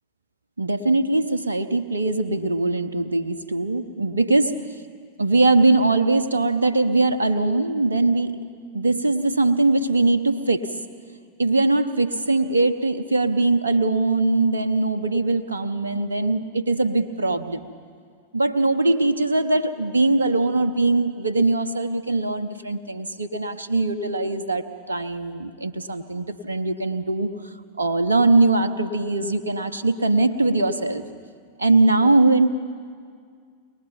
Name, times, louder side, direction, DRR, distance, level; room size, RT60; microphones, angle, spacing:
voice 1, 0.6-4.8 5.2-8.4 8.7-10.7 11.4-17.7 18.3-31.1 31.6-32.5, right 2 dB, 75° right, 10 dB, 0.8 m, -21 dB
23.0 x 19.5 x 5.9 m, 2.1 s
figure-of-eight pair, 90°, 0 cm